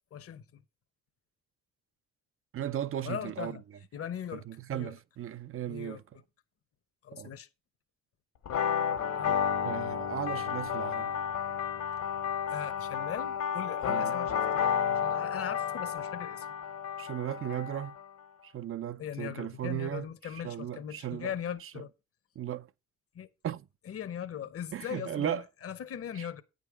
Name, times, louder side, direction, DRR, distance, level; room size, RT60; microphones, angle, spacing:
voice 1, 0.1-0.6 3.0-3.6 3.9-4.9 5.7-6.0 7.0-7.5 9.2-9.4 12.5-16.5 19.0-21.9 23.1-23.3 23.9-26.4, left 9 dB, 50° left, 1.0 m, -40 dB
voice 2, 2.5-3.6 4.5-6.0 7.1-7.4 9.6-11.1 13.9-14.1 17.0-18.0 18.4-21.3 21.6-21.7 22.4-22.7 23.4-23.7 24.7-25.4 26.1-26.3, right 11 dB, 45° right, 0.5 m, -36 dB
sound 1, 8.5-18.1, left 8 dB, 70° left, 1.7 m, -31 dB
9.1 x 5.2 x 4.9 m
cardioid pair, 90°, 30 cm